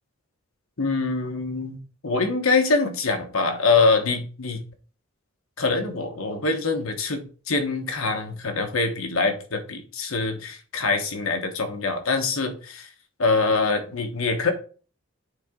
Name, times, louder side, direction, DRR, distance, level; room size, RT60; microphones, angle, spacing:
voice 1, 0.8-4.6 5.6-12.9 13.2-14.5, left 3 dB, 80° left, 6 dB, 1.2 m, -24 dB
8.7 x 3.9 x 3.7 m, 0.40 s
head